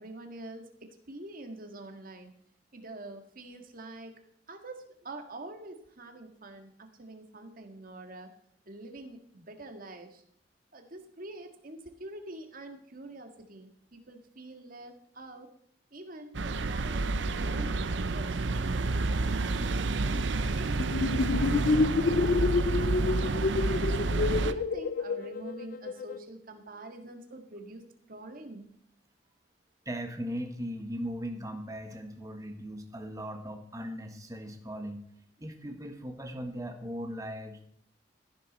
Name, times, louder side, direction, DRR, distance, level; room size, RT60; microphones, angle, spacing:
voice 1, 0.0-2.3 2.7-4.1 4.5-8.3 8.7-10.2 10.7-15.5 15.9-18.9 19.4-24.0 24.4-28.7, right 2 dB, 50° right, 5 dB, 1.8 m, -45 dB
sound 1, 16.3-24.5, right 3 dB, 80° right, 0.7 m, -29 dB
sound 2, 20.8-26.2, left 3 dB, 50° left, 0.5 m, -28 dB
voice 2, 29.8-35.0 35.4-37.7, equal, 20° right, 5 dB, 1.6 m, -38 dB
14.0 x 11.0 x 4.2 m, 0.67 s
head